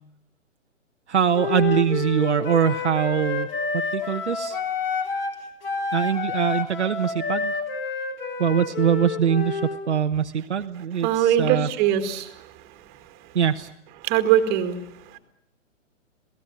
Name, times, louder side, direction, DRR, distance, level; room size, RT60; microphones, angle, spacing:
voice 1, 1.1-3.5 3.7-4.6 5.9-7.5 8.4-11.7 13.3-13.7, right 8 dB, 60° right, 7 dB, 1.1 m, -23 dB
Wind instrument woodwind instrument, 1.3-5.4 5.6-9.8, left 4 dB, 45° left, 3.6 m, -29 dB
voice 2, 11.0-12.5 14.0-15.2, right 10 dB, 25° right, 8 dB, 2.2 m, -22 dB
27.5 x 18.0 x 8.9 m, 0.77 s
figure-of-eight pair, 120°, 38 cm